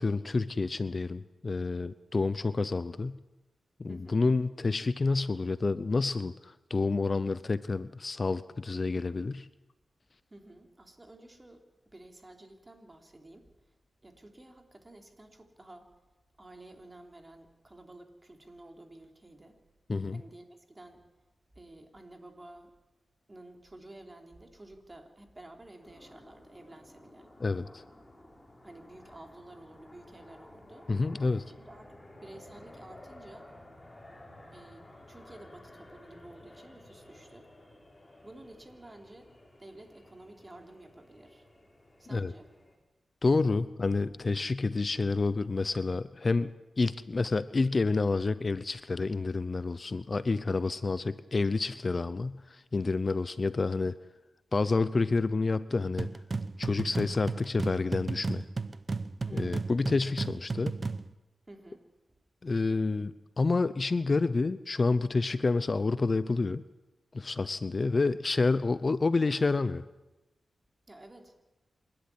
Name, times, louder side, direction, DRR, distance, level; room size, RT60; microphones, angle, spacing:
voice 1, 0.0-3.2 3.8-9.5 19.9-20.2 27.4-27.8 30.9-31.4 42.1-42.3 43.2-46.5 46.8-54.0 54.5-56.1 56.6-58.4 59.3-60.7 62.4-66.6 67.1-69.8, left 3 dB, 40° left, 15 dB, 0.7 m, -29 dB
voice 2, 3.9-4.2 10.3-11.6 11.9-13.5 14.0-15.9 16.4-19.6 20.1-21.0 21.6-22.7 23.3-27.3 28.6-30.9 31.5-33.5 34.5-37.5 38.2-39.3 39.6-41.5 42.0-42.5 59.2-59.8 61.5-61.8 62.1-62.2 70.9-71.4, right 1 dB, 25° right, 3 dB, 3.5 m, -51 dB
sound 1, 25.8-42.8, left 1 dB, 20° left, 4.9 m, -54 dB
sound 2, 56.0-61.1, right 3 dB, 45° right, 0.9 m, -34 dB
27.0 x 12.0 x 9.7 m, 1.1 s
cardioid pair, 70°, 0 cm